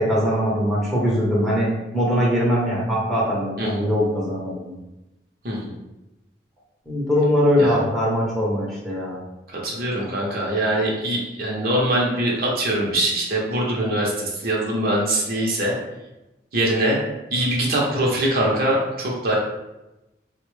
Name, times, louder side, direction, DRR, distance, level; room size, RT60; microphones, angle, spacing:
voice 1, 0.0-4.8 6.9-9.2, equal, ahead, -6 dB, 0.7 m, -21 dB
voice 2, 9.5-15.7 16.5-17.0 17.3-19.4, right 1 dB, 55° right, -3 dB, 0.7 m, -23 dB
4.1 x 2.1 x 3.1 m, 0.98 s
head